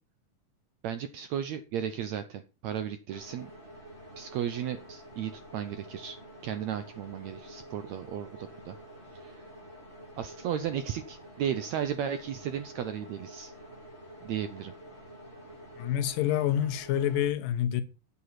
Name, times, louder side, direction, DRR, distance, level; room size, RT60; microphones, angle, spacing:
voice 1, 0.8-3.5 4.2-6.2 6.4-8.8 9.1-9.4 10.2-13.5 14.2-14.7, right 9 dB, 75° right, 1.6 m, -35 dB
sound 1, 3.1-17.3, equal, 35° right, 7.8 m, -49 dB
voice 2, 15.8-17.8, left 10 dB, 80° left, 2.7 m, -27 dB
9.8 x 8.2 x 5.8 m
omnidirectional pair, 4.0 m